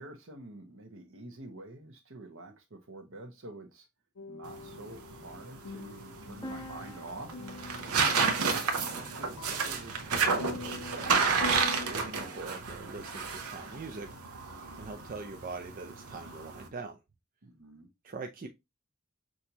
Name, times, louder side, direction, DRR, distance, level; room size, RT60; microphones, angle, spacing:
voice 1, 0.0-3.9 4.3-7.3 17.4-17.9, right 2 dB, 65° right, 1.2 m, -47 dB
sound 1, 4.2-11.9, left 3 dB, 65° left, 0.5 m, -45 dB
sound 2, 4.4-16.7, right 4 dB, 85° right, 0.9 m, -31 dB
sound 3, 6.4-10.2, left 1 dB, 15° left, 0.7 m, -49 dB
voice 2, 8.0-8.4 8.9-11.4 11.8-14.1 14.7-17.0 18.0-18.5, right 4 dB, 40° right, 0.5 m, -44 dB
6.3 x 2.8 x 2.9 m
head